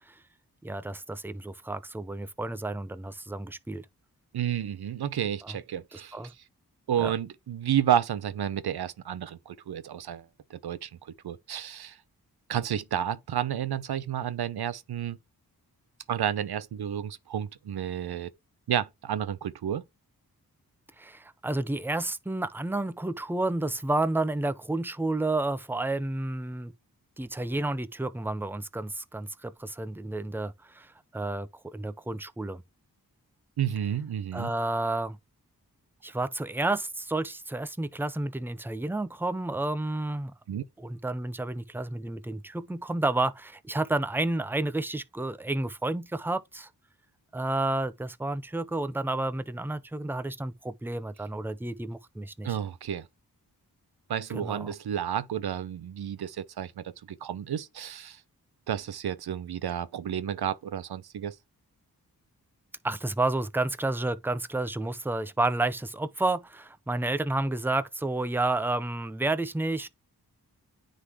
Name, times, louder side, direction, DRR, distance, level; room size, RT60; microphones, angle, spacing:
voice 1, 0.6-3.8 5.4-5.6 5.9-6.3 7.0-7.1 21.0-26.7 27.2-32.6 34.3-35.2 36.0-40.3 40.8-46.7 47.3-52.6 54.3-54.7 62.8-69.9, right 2 dB, 5° right, 0.7 m, -31 dB
voice 2, 4.3-6.2 6.9-10.2 10.5-10.9 11.2-12.0 12.5-15.2 16.1-18.3 18.7-19.8 33.6-34.5 40.5-40.6 52.4-53.0 54.1-58.2 58.7-61.3, right 10 dB, 80° right, 0.7 m, -31 dB
9.5 x 3.9 x 3.1 m
cardioid pair, 40°, 38 cm